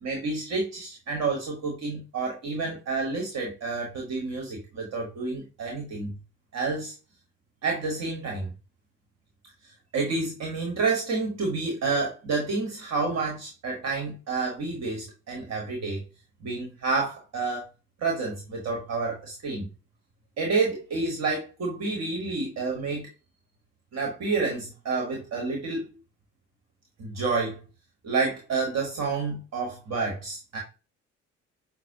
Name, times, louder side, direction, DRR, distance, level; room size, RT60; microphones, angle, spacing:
voice 1, 0.0-6.1 6.5-6.9 7.6-8.5 9.9-16.0 16.4-17.7 18.0-19.7 20.4-23.1 23.9-26.0 27.0-27.6 28.0-30.6, right 4 dB, 45° right, -1 dB, 1.3 m, -29 dB
6.0 x 2.0 x 2.7 m, 0.30 s
figure-of-eight pair, 50°, 36 cm